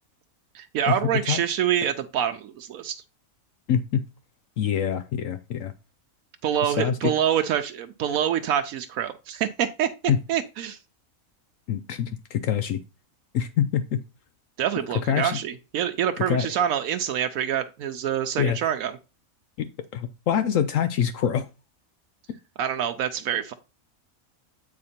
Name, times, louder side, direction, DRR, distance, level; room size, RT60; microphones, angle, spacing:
voice 1, 0.5-3.0 6.4-9.9 10.3-10.8 14.6-18.9 22.6-23.5, right 9 dB, 80° right, 7 dB, 1.1 m, -26 dB
voice 2, 3.7-4.0 4.6-5.7 6.6-7.1 10.1-10.2 11.7-12.8 13.3-14.0 15.1-15.4 16.3-16.5 18.4-18.7 19.6-19.7 19.9-21.5, left 8 dB, 70° left, 10 dB, 0.9 m, -25 dB
8.7 x 4.3 x 4.2 m, 0.29 s
omnidirectional pair, 1.5 m